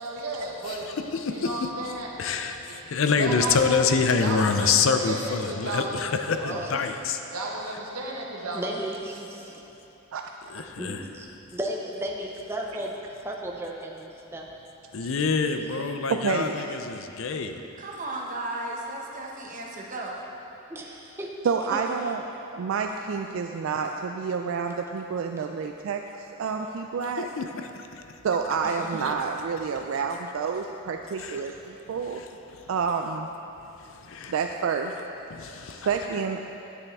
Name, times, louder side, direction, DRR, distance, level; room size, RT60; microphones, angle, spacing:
voice 1, 0.0-0.9 1.3-2.1 2.7-2.8 3.1-3.9 4.2-4.7 5.0-6.6 7.3-8.6 23.3-23.6, right 2 dB, 85° right, -2 dB, 1.3 m, -34 dB
voice 2, 0.8-1.7 2.2-7.2 10.5-11.0 14.9-17.6 27.2-27.9 31.2-31.4 32.1-32.3 33.9-34.3 35.3-35.9, left 5 dB, 60° left, 7 dB, 0.5 m, -26 dB
voice 3, 6.5-6.9 8.5-9.6 10.8-12.9 13.2-14.5 20.7-21.3 21.7-21.8 28.6-28.9 31.4-31.5, right 1 dB, 10° right, -1 dB, 0.5 m, -35 dB
voice 4, 16.1-16.8 21.4-22.2 22.5-26.0 26.4-27.3 28.2-32.2 32.7-33.3 34.3-34.9 35.9-36.6, right 5 dB, 65° right, 4 dB, 0.3 m, -29 dB
voice 5, 17.8-20.1, right 2 dB, 35° right, -1 dB, 1.0 m, -35 dB
9.8 x 8.4 x 3.5 m, 3.0 s
head